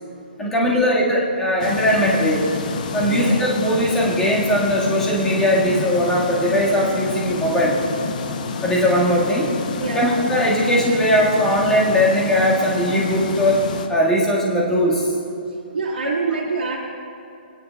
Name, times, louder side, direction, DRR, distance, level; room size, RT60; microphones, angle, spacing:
voice 1, 0.4-2.5 2.9-7.8 8.6-9.5 9.8-13.6 13.9-15.1, equal, 10° left, -5 dB, 1.8 m, -19 dB
sound 1, 1.6-13.9, left 5 dB, 50° left, 0.8 m, -28 dB
voice 2, 9.7-10.1 15.7-16.8, right 4 dB, 80° right, -3 dB, 1.9 m, -25 dB
23.5 x 10.0 x 2.4 m, 2.7 s
hypercardioid pair, 160°, 6 cm